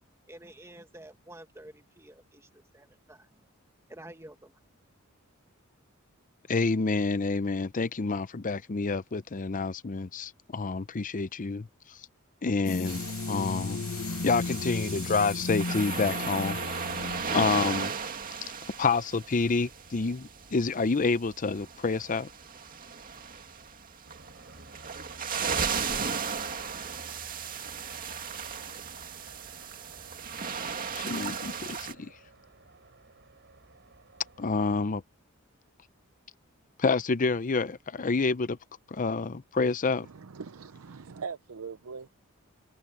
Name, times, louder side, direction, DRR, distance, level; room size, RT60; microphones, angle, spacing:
voice 1, 0.3-3.4 3.9-4.5, right 1 dB, 15° right, 1.9 m, -50 dB
voice 2, 6.5-12.0 12.4-13.8 14.2-16.6 17.1-17.9 18.8-22.3 30.9-32.1 34.4-35.0 36.8-38.6 38.9-40.1, left 4 dB, 40° left, 0.6 m, -28 dB
sound 1, 12.6-17.9, left 3 dB, 75° left, 1.1 m, -35 dB
sound 2, 12.9-31.9, right 6 dB, 40° right, 2.2 m, -36 dB
sound 3, 24.0-34.8, right 3 dB, 55° right, 4.1 m, -54 dB
voice 3, 40.0-42.1, right 5 dB, 80° right, 0.6 m, -41 dB
head